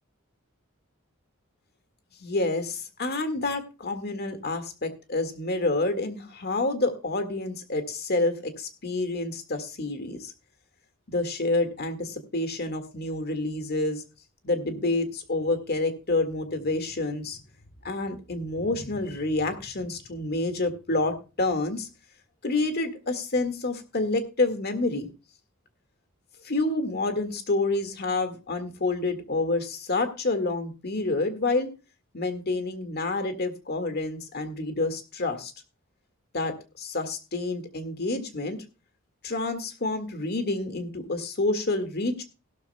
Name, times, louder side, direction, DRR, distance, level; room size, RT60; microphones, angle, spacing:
voice 1, 2.2-10.3 11.1-14.0 14.4-17.4 17.8-21.9 22.4-25.1 26.4-31.7 32.1-35.5 36.3-38.6 39.2-42.2, left 2 dB, 50° left, 8 dB, 1.8 m, -28 dB
16.5 x 12.5 x 2.2 m, 0.31 s
head